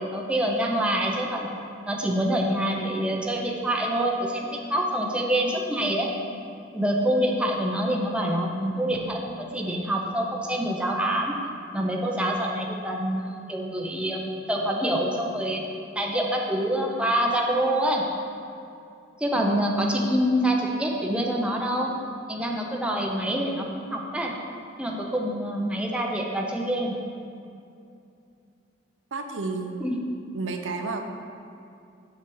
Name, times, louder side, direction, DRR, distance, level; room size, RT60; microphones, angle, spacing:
voice 1, 0.0-1.5 1.9-6.1 6.7-11.4 11.7-15.7 15.9-18.0 19.2-21.9 22.3-23.7 23.9-24.3 24.8-27.0 29.8-29.9, right 1 dB, 5° right, -1 dB, 0.6 m, -26 dB
voice 2, 29.1-29.9 30.3-31.1, right 3 dB, 85° right, 4 dB, 0.6 m, -31 dB
7.4 x 5.8 x 4.6 m, 2.6 s
head